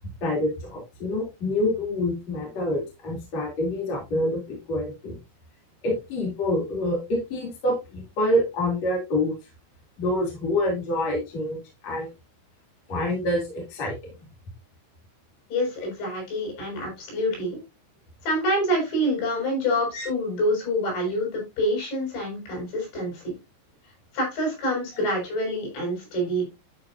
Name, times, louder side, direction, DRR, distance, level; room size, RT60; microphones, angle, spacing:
voice 1, 0.2-5.2 5.8-9.3 10.0-12.1 12.9-14.1 19.9-20.1 24.9-25.0, left 1 dB, 40° left, -2 dB, 3.7 m, -27 dB
voice 2, 15.5-17.6 18.2-23.4 24.1-26.4, equal, 60° left, 0 dB, 8.4 m, -26 dB
13.0 x 6.4 x 2.7 m, 0.24 s
omnidirectional pair, 5.7 m